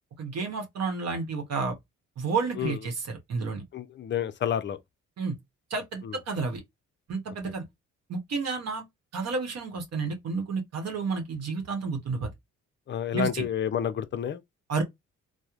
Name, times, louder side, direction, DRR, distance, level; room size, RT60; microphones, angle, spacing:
voice 1, 0.2-1.7 2.2-3.6 5.2-5.4 5.7-6.6 7.1-7.6 8.1-8.9 9.1-12.3 13.1-13.4 14.7-14.8, right 4 dB, 60° right, 0.9 m, -31 dB
voice 2, 3.7-4.8 6.0-6.2 12.9-14.4, left 9 dB, 40° left, 0.4 m, -29 dB
3.0 x 2.0 x 2.4 m
cardioid pair, 90°, 30 cm